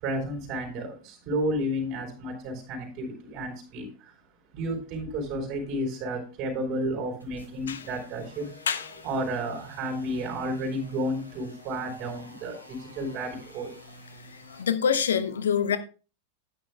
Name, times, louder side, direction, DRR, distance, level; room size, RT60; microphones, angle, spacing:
voice 1, 0.0-4.1 4.5-8.5 9.0-13.7, right 1 dB, 40° right, 4.0 m, -32 dB
sound 1, 7.2-14.6, left 1 dB, 90° left, 2.2 m, -51 dB
voice 2, 8.7-9.0 14.5-15.8, left 7 dB, 65° left, 0.9 m, -26 dB
12.0 x 9.6 x 2.3 m
figure-of-eight pair, 90°, 0 cm